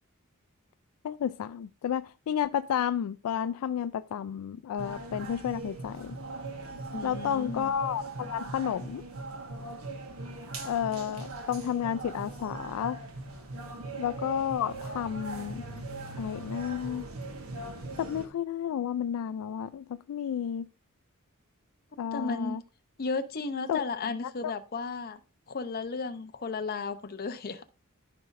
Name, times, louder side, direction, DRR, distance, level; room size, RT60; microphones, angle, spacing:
voice 1, 1.0-6.2 7.0-9.0 10.6-13.0 14.0-15.6 16.2-17.1 18.0-20.7 22.0-22.6 23.7-23.8 24.4-24.5, left 9 dB, 75° left, 0.3 m, -31 dB
sound 1, 4.8-18.3, right 2 dB, 75° right, 1.3 m, -40 dB
voice 2, 6.9-7.7 22.1-22.6 23.0-25.2 25.5-27.7, left 4 dB, 45° left, 0.6 m, -34 dB
13.5 x 5.2 x 2.5 m
head